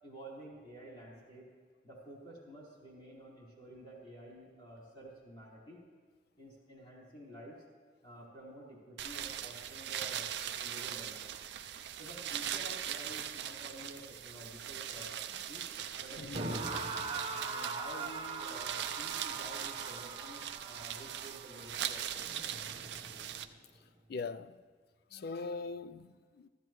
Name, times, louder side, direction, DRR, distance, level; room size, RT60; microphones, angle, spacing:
voice 1, 0.0-1.4 1.8-5.8 6.4-7.6 8.0-11.5 12.0-15.6 16.0-16.9 17.3-22.5, right 1 dB, 30° left, 4.1 m, -51 dB
sound 1, 9.0-23.4, right 10 dB, 65° right, 0.5 m, -41 dB
voice 2, 16.2-16.5 24.1-24.6 25.1-26.5, left 4 dB, 55° left, 0.4 m, -41 dB
sound 2, 16.3-23.5, right 3 dB, 30° right, 0.9 m, -42 dB
15.5 x 14.0 x 3.1 m
head